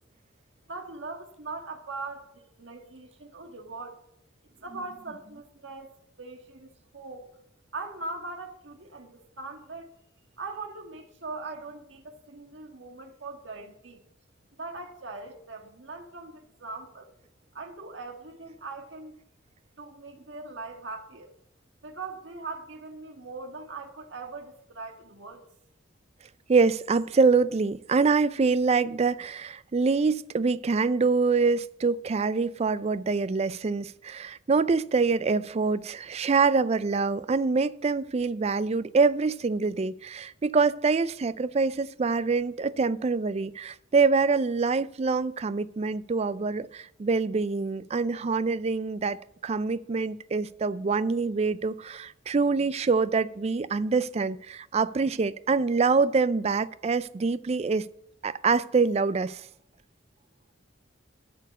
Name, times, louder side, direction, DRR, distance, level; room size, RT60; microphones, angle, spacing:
voice 1, 0.7-4.0 4.6-6.7 6.9-7.3 7.7-9.9 10.4-14.0 14.6-17.1 17.5-19.2 19.8-21.3 21.8-25.4, right 3 dB, 75° right, 1.6 m, -40 dB
voice 2, 26.5-57.9 58.2-59.5, right 4 dB, 35° right, 0.4 m, -25 dB
12.5 x 4.6 x 8.1 m
head